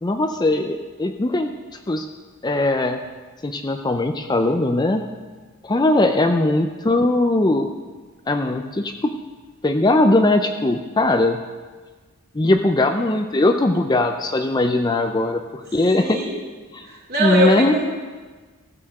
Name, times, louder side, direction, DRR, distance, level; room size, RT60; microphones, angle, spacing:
voice 1, 0.0-1.5 1.9-2.1 2.4-3.0 3.4-5.0 5.6-7.7 8.3-9.1 9.6-11.4 12.3-16.2 16.7-16.9 17.2-17.8, left 2 dB, 20° left, 6 dB, 0.4 m, -20 dB
voice 2, 5.7-6.0 13.1-13.2 15.9-16.4 16.9-17.8, right 1 dB, 45° right, -2 dB, 2.5 m, -23 dB
15.0 x 6.7 x 6.4 m, 1.4 s
head